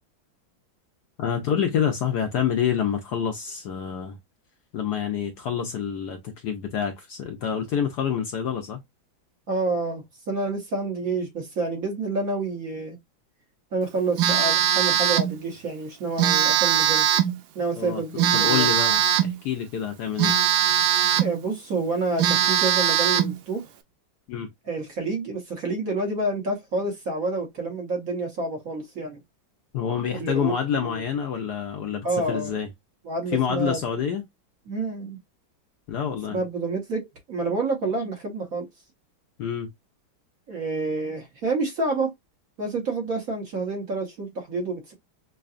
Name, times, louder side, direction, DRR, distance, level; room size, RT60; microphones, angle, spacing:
voice 1, 1.2-4.2 4.7-8.8 17.8-18.0 18.3-20.3 24.3-24.5 29.7-32.7 33.3-34.2 35.9-36.4 39.4-39.7, left 8 dB, 70° left, 1.1 m, -27 dB
voice 2, 9.5-13.0 13.7-17.1 17.5-18.7 21.2-23.7 24.7-29.2 30.2-30.5 30.8-31.0 32.0-32.5 33.0-33.8 34.7-35.2 36.3-38.7 40.5-42.1 42.6-44.9, right 3 dB, 50° right, 1.4 m, -28 dB
Telephone, 14.2-15.4 16.2-17.4 18.2-19.4 20.2-21.4 21.8-21.9 22.2-23.4, right 11 dB, 90° right, 1.4 m, -21 dB
5.5 x 2.3 x 2.4 m
omnidirectional pair, 2.2 m